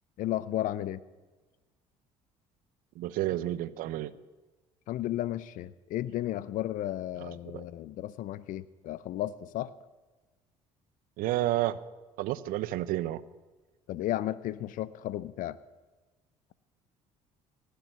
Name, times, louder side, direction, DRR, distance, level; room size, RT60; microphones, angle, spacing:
voice 1, 0.2-1.0 4.9-9.7 13.9-15.6, left 13 dB, 65° left, 18 dB, 0.6 m, -33 dB
voice 2, 3.0-4.1 11.2-11.8 12.2-13.2, right 15 dB, 70° right, 17 dB, 0.7 m, -30 dB
17.5 x 6.8 x 9.0 m, 1.2 s
supercardioid pair, 70°, 15 cm